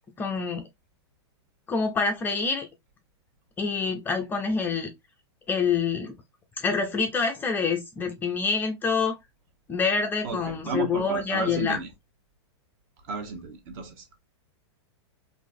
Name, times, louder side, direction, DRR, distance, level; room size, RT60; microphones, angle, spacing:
voice 1, 0.2-0.6 1.7-2.7 3.6-4.9 5.5-6.2 6.6-9.2 9.7-11.8, left 5 dB, 15° left, 0.4 m, -26 dB
voice 2, 10.2-11.9 13.1-14.2, right 4 dB, 45° right, 1.0 m, -33 dB
3.7 x 2.6 x 2.5 m
supercardioid pair, 150°, 14 cm